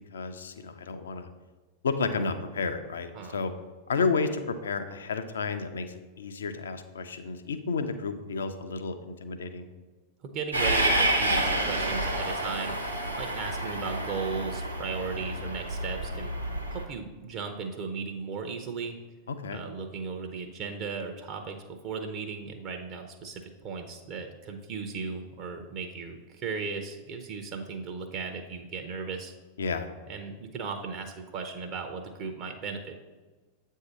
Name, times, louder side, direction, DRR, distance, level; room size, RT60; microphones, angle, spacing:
voice 1, 0.1-1.3 1.8-3.5 3.9-9.7 19.3-19.6 29.6-29.9, left 4 dB, 65° left, 9 dB, 0.5 m, -31 dB
voice 2, 10.2-12.8 13.2-16.3 16.7-19.0 19.5-21.6 21.8-29.3 30.1-32.8, right 5 dB, 40° right, 4 dB, 0.6 m, -36 dB
Train, 10.5-16.8, right 1 dB, 90° right, 0.8 m, -29 dB
7.8 x 2.7 x 5.9 m, 1.3 s
figure-of-eight pair, 90°, 0 cm